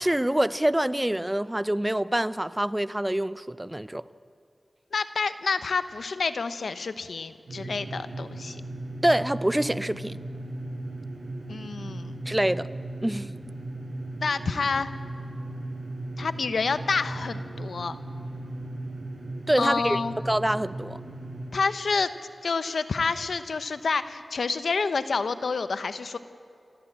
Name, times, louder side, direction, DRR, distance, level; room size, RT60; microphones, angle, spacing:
voice 1, 0.0-4.0 9.0-10.2 12.3-12.7 13.0-13.3 19.5-20.0 20.3-21.0, right 1 dB, 15° right, 0.6 m, -25 dB
voice 2, 4.9-8.6 11.5-12.1 14.2-14.9 16.2-18.0 19.6-20.2 21.5-22.1 22.4-26.2, left 4 dB, 85° left, 0.9 m, -28 dB
sound 1, 7.5-21.5, right 2 dB, 75° right, 5.6 m, -37 dB
29.0 x 14.5 x 8.7 m
cardioid pair, 50°, 0 cm